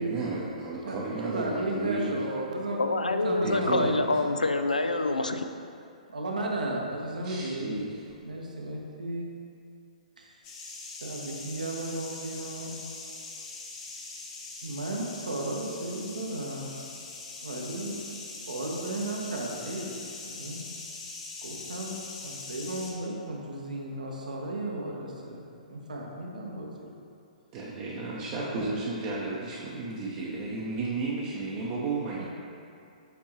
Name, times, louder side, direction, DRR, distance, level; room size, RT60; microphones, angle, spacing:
voice 1, 0.0-2.2 3.4-3.9 7.2-8.1 27.5-32.2, right 3 dB, 35° right, -5 dB, 0.7 m, -33 dB
voice 2, 0.8-4.4 6.1-7.8 8.2-9.3 10.2-10.5 11.0-12.7 14.6-16.7 17.4-18.0 18.5-19.9 20.2-20.6 21.4-21.9 22.2-26.9 28.3-28.9 32.2-32.3, right 1 dB, 75° right, -1 dB, 1.0 m, -34 dB
voice 3, 2.8-5.4, left 2 dB, 90° left, 7 dB, 0.3 m, -26 dB
sound 1, 10.4-22.9, left 3 dB, 35° left, 1.0 m, -42 dB
7.3 x 4.5 x 2.9 m, 2.5 s
figure-of-eight pair, 120°, 4 cm